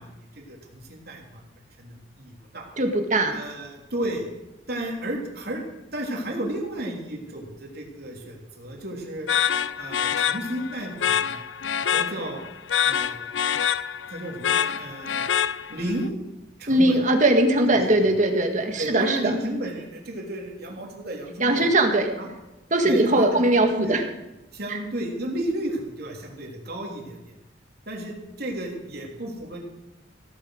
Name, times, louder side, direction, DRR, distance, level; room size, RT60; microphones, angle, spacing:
voice 1, 0.0-1.4 1.8-2.7 3.3-4.2 4.7-5.6 5.9-9.3 9.8-11.4 11.9-12.4 12.8-13.2 14.1-15.3 15.7-16.1 16.6-17.0 17.7-18.1 18.8-21.6 22.2-22.3 22.8-23.4 23.8-23.9 24.5-27.3 27.9-29.6, right 1 dB, 60° right, 0 dB, 3.4 m, -33 dB
voice 2, 2.8-3.4 16.7-19.4 21.4-22.1 22.7-24.0 24.7-24.8, right 1 dB, 45° right, 5 dB, 1.9 m, -20 dB
sound 1, 9.3-16.0, left 8 dB, 85° left, 0.6 m, -26 dB
16.5 x 9.9 x 6.6 m, 1.0 s
head